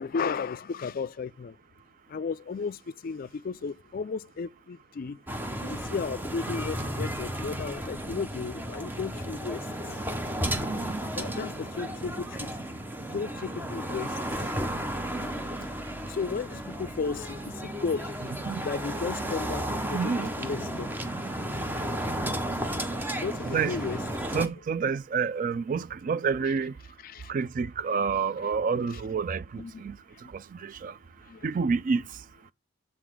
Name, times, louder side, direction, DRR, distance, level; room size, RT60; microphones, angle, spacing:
voice 1, 0.0-1.6 2.1-5.2 5.6-9.7 11.2-12.5 13.1-14.8 15.2-15.3 16.1-18.4 18.6-20.9 23.2-24.4 27.0-27.3 28.9-29.0 29.5-29.8 31.3-31.5, left 5 dB, 45° left, 0.3 m, -34 dB
sound 1, 5.3-24.5, right 1 dB, 10° right, 0.7 m, -33 dB
voice 2, 19.9-20.3 23.4-23.9 24.3-26.7 27.3-30.0 30.3-31.0 31.4-32.0, right 5 dB, 45° right, 0.3 m, -29 dB
7.4 x 4.0 x 4.5 m
head